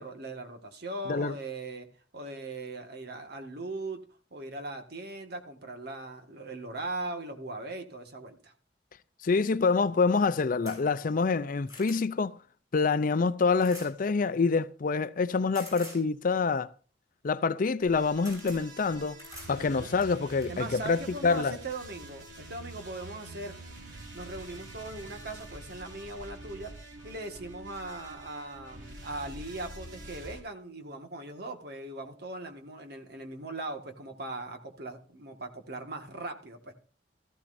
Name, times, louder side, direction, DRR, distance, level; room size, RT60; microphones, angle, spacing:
voice 1, 0.0-1.9 2.1-4.0 4.3-8.5 19.5-19.9 20.5-23.6 24.1-26.7 27.0-36.7, right 2 dB, 60° right, 1.7 m, -39 dB
voice 2, 9.2-12.3 12.7-16.7 17.2-19.2 19.5-21.6, left 4 dB, 45° left, 0.5 m, -26 dB
sound 1, 10.7-10.8 11.3-12.0 13.6-13.9 15.5-16.0 17.7-17.9 18.2-18.6 19.2-19.5 20.0-20.5 21.6-21.7 22.1-22.2, right 1 dB, 20° right, 8.0 m, -46 dB
sound 2, 17.8-30.4, right 1 dB, 80° right, 3.0 m, -46 dB
14.5 x 14.5 x 2.6 m
head